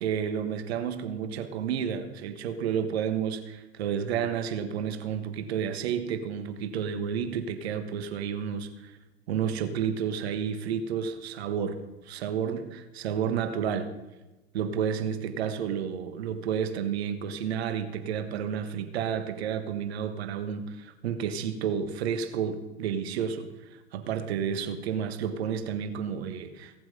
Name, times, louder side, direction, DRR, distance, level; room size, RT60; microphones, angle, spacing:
voice 1, 0.0-8.9 9.3-13.9 14.5-23.5 23.9-26.7, right 8 dB, 75° right, 1.4 m, -31 dB
17.0 x 7.7 x 5.4 m
hypercardioid pair, 80°, 32 cm